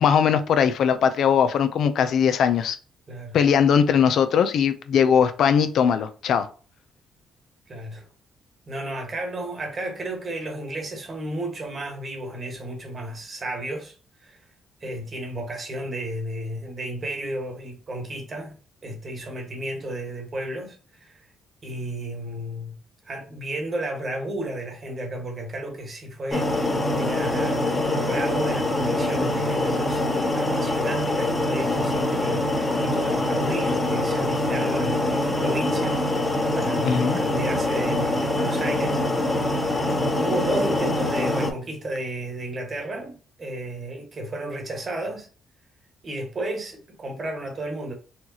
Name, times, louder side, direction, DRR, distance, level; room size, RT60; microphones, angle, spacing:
voice 1, 0.0-2.8 3.3-6.5 36.8-37.2, left 7 dB, 70° left, 0.5 m, -20 dB
voice 2, 7.7-8.0 8.7-13.9 14.2-14.4 14.8-18.5 18.8-21.1 21.6-22.7 23.0-26.6 27.0-39.5 40.2-45.3 46.0-47.9, right 1 dB, 40° right, 1.5 m, -33 dB
sound 1, 26.3-41.5, left 1 dB, 20° left, 1.0 m, -24 dB
4.3 x 2.3 x 2.8 m
cardioid pair, 90°, 0 cm